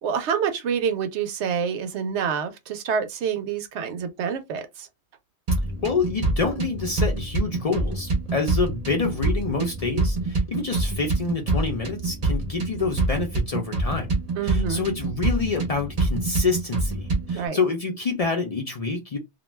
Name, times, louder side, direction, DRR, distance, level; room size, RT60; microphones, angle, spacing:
voice 1, 0.0-4.9 14.4-14.8 17.3-17.6, right 7 dB, 80° right, 0.9 m, -27 dB
sound 1, 5.5-17.5, right 2 dB, 40° right, 0.7 m, -26 dB
voice 2, 5.8-14.2 14.4-19.2, left 4 dB, 45° left, 0.5 m, -27 dB
2.4 x 2.1 x 3.1 m
omnidirectional pair, 1.1 m